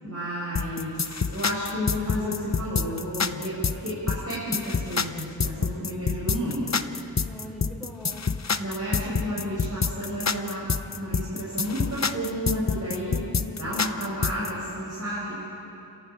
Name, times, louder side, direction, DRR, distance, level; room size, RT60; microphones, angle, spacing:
voice 1, 0.0-6.8 8.6-10.7 10.9-13.1 13.6-15.3, equal, 40° right, -8 dB, 6.7 m, -31 dB
sound 1, 0.6-14.5, left 5 dB, 45° left, 0.8 m, -27 dB
voice 2, 7.1-8.3 13.1-13.8, left 1 dB, ahead, -2 dB, 6.0 m, -41 dB
30.0 x 14.5 x 9.5 m, 2.8 s
wide cardioid pair, 75°, 38 cm